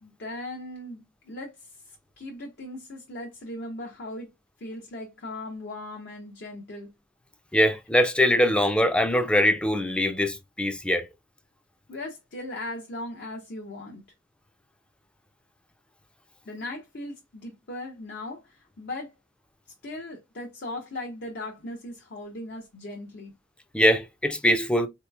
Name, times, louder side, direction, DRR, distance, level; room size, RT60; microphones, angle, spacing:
voice 1, 0.0-4.3 4.6-6.9 11.9-14.0 16.5-19.1 19.8-23.3, left 1 dB, 60° left, 0.7 m, -38 dB
voice 2, 7.5-11.1 23.7-24.9, equal, 5° left, 0.4 m, -22 dB
3.9 x 2.9 x 2.2 m
head